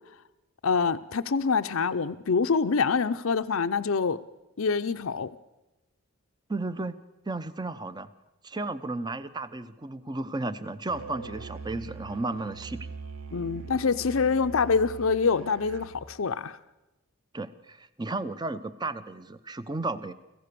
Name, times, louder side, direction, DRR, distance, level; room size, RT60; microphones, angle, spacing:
voice 1, 0.6-4.2 4.6-5.3 13.3-16.6, left 5 dB, 80° left, 10 dB, 0.6 m, -25 dB
voice 2, 6.5-7.0 7.3-8.1 8.4-12.9 17.3-20.1, right 2 dB, 20° right, 14 dB, 0.7 m, -33 dB
Musical instrument, 10.9-16.0, right 4 dB, 80° right, 1.1 m, -42 dB
25.5 x 15.5 x 6.8 m, 1.0 s
head